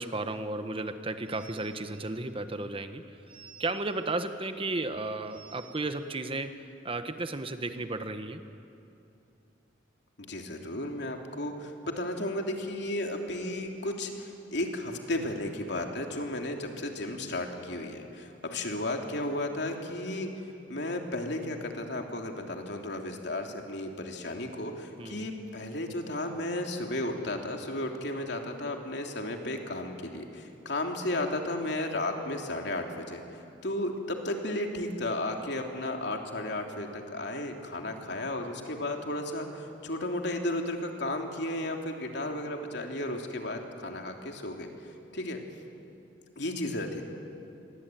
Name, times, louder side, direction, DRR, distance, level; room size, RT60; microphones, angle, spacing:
voice 1, 0.0-8.4 25.0-25.3, right 2 dB, 30° right, 9 dB, 1.2 m, -34 dB
voice 2, 10.2-20.3 20.7-33.2 33.6-44.7 45.1-45.4 46.4-47.0, left 1 dB, 65° left, 3 dB, 3.1 m, -34 dB
28.5 x 22.0 x 9.3 m, 2.7 s
head